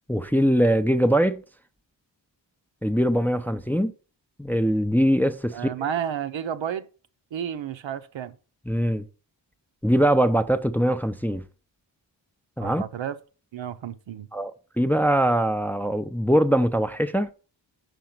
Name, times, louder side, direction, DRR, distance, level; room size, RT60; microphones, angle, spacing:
voice 1, 0.1-1.4 2.8-3.9 4.4-5.7 8.7-9.0 9.8-11.4 12.6-12.8 14.3-14.5 14.8-17.3, equal, 5° left, 0.5 m, -22 dB
voice 2, 5.5-6.9 7.3-8.3 12.6-13.2 13.5-14.3, right 9 dB, 80° right, 0.7 m, -31 dB
5.3 x 4.7 x 5.9 m
cardioid pair, 65°, 45 cm